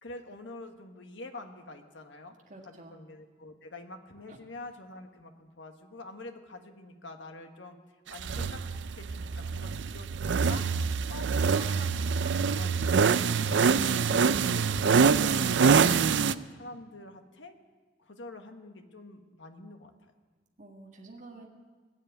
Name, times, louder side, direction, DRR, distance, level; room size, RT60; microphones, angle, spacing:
voice 1, 0.0-2.3 2.6-7.8 8.1-8.6 8.9-10.8 11.1-17.5 18.0-20.1, left 2 dB, 80° left, 6 dB, 1.5 m, -46 dB
voice 2, 2.5-3.0 4.3-4.4 20.6-21.5, right 2 dB, 40° right, -1 dB, 1.8 m, -49 dB
sound 1, 8.2-16.4, right 5 dB, 75° right, 0.4 m, -25 dB
20.0 x 7.6 x 9.2 m, 1.4 s
head